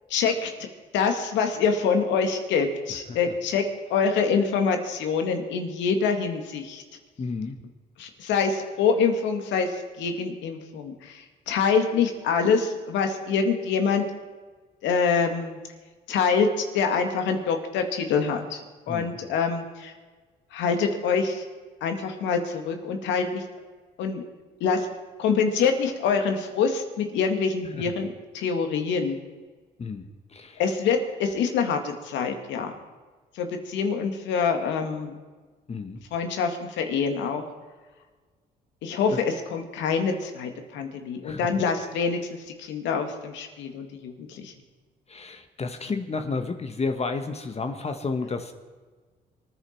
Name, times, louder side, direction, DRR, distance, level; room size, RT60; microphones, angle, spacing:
voice 1, 0.1-0.5 0.9-3.6 3.9-6.8 8.0-14.1 14.8-15.6 16.1-16.5 16.7-18.6 18.9-19.9 20.5-21.4 21.8-23.4 24.0-24.2 24.6-24.9 25.2-29.2 30.6-32.7 33.4-35.1 36.1-37.4 38.8-42.2 42.6-44.5, left 5 dB, 90° left, 5 dB, 2.0 m, -25 dB
voice 2, 7.2-7.6 18.9-19.2 27.7-27.9 29.8-30.6 35.7-36.0 39.1-39.2 41.2-41.5 45.1-48.5, left 4 dB, 35° left, 7 dB, 1.3 m, -31 dB
24.5 x 10.0 x 4.5 m, 1.4 s
cardioid pair, 85°, 18 cm